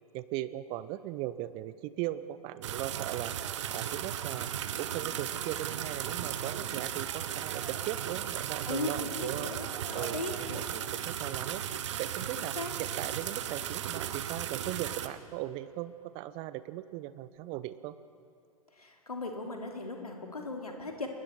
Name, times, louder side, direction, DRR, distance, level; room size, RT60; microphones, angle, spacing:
voice 1, 0.1-3.3 3.7-4.5 4.8-9.5 9.9-11.6 12.0-17.9, right 14 dB, 30° right, 15 dB, 0.6 m, -38 dB
sound 1, 2.6-15.1, right 10 dB, 50° right, 1.1 m, -36 dB
sound 2, 3.4-12.0 17.4-17.5, left 3 dB, 5° right, 5.0 m, -60 dB
voice 2, 8.6-10.7 12.4-12.7 18.8-21.1, left 2 dB, 80° left, 2 dB, 2.7 m, -38 dB
29.0 x 22.0 x 4.4 m, 2.4 s
figure-of-eight pair, 105°, 19 cm